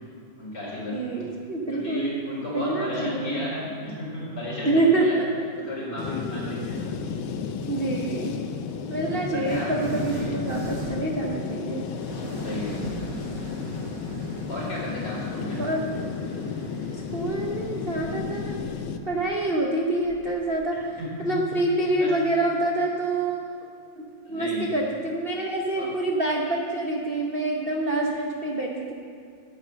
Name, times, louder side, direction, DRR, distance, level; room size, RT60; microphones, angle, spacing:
voice 1, 0.4-1.3 1.7-5.2 5.6-6.8 9.3-9.7 10.1-10.4 12.4-12.8 14.5-15.6 20.9-21.3 22.0-22.2 24.3-24.8 25.7-25.9, left 1 dB, 60° left, -6 dB, 4.6 m, -33 dB
voice 2, 0.9-2.2 2.5-3.4 4.6-5.4 7.7-8.3 8.9-11.8 13.4-13.5 15.6-15.8 17.1-18.6 19.0-23.5 24.0-24.1 24.3-28.9, right 2 dB, 45° right, -1 dB, 0.8 m, -26 dB
sound 1, 6.0-19.0, left 6 dB, 85° left, 1.5 m, -33 dB
sound 2, 6.7-7.2 8.2-21.7, right 2 dB, 65° right, 2.2 m, -40 dB
11.0 x 8.3 x 7.5 m, 2.3 s
omnidirectional pair, 2.1 m